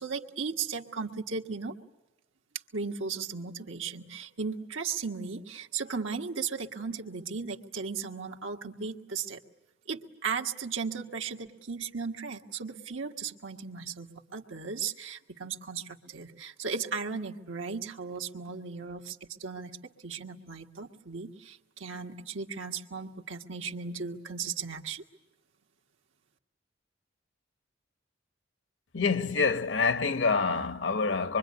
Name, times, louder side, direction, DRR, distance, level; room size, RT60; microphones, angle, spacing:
voice 1, 0.0-1.7 2.7-9.4 9.9-19.8 20.0-25.0, right 5 dB, 85° right, 1.6 m, -36 dB
voice 2, 28.9-31.4, left 4 dB, 65° left, 0.9 m, -26 dB
25.5 x 23.5 x 9.6 m
head